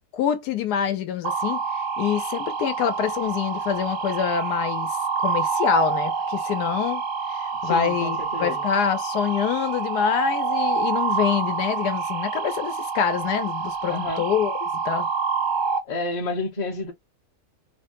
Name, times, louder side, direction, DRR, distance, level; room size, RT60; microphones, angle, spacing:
voice 1, 0.1-4.9 5.2-7.0 7.3-15.1, left 8 dB, 90° left, 1.2 m, -26 dB
sound 1, 1.2-15.8, right 5 dB, 90° right, 1.2 m, -27 dB
voice 2, 7.6-8.6 13.9-14.2 15.8-16.9, left 2 dB, 35° left, 0.7 m, -30 dB
3.2 x 2.2 x 2.8 m
omnidirectional pair, 1.7 m